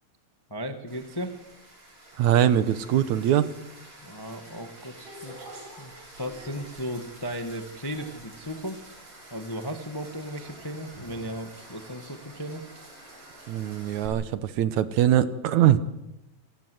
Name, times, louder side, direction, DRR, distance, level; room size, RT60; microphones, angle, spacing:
voice 1, 0.5-1.4 4.0-8.9 9.3-12.6, equal, 15° left, 7 dB, 0.8 m, -36 dB
sound 1, 0.9-14.1, right 2 dB, 45° right, 8.9 m, -47 dB
voice 2, 2.2-3.5 13.5-15.8, right 11 dB, 70° right, 14 dB, 2.2 m, -22 dB
28.0 x 16.5 x 7.9 m, 0.94 s
omnidirectional pair, 3.7 m